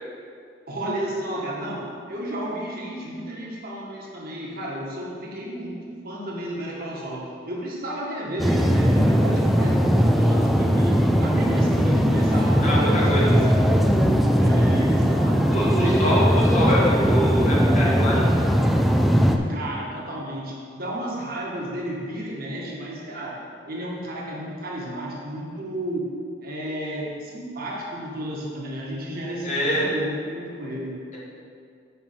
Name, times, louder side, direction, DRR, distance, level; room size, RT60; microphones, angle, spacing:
voice 1, 0.7-13.9 14.4-15.5 15.8-16.5 19.5-26.1 26.4-31.0, equal, 55° right, -3 dB, 1.6 m, -32 dB
sound 1, 8.4-19.4, equal, ahead, 0.4 m, -19 dB
voice 2, 12.6-13.3 15.5-18.5 29.4-29.9, equal, 40° left, -6 dB, 1.8 m, -25 dB
8.6 x 4.6 x 5.7 m, 2.3 s
head